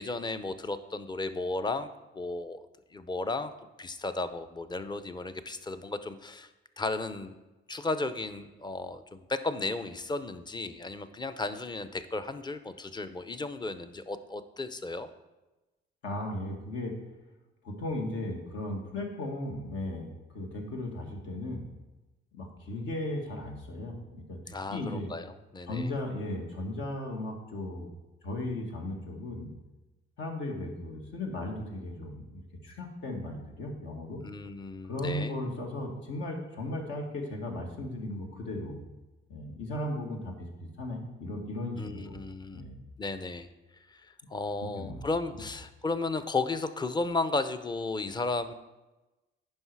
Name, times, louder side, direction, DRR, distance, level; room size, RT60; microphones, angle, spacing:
voice 1, 0.0-1.9 2.1-3.5 3.8-6.5 6.8-7.4 7.7-15.1 24.5-25.9 34.2-35.3 41.8-42.7 43.0-43.5 43.9-48.5, left 3 dB, 20° left, 10 dB, 0.6 m, -34 dB
voice 2, 16.0-16.9 17.6-20.1 20.3-21.7 22.3-25.1 25.7-27.9 28.2-29.5 30.2-34.2 34.8-38.8 39.3-42.2 42.5-42.8 44.8-45.0, left 1 dB, 70° left, 1 dB, 1.9 m, -36 dB
9.7 x 5.7 x 4.7 m, 1.1 s
cardioid pair, 90°, 20 cm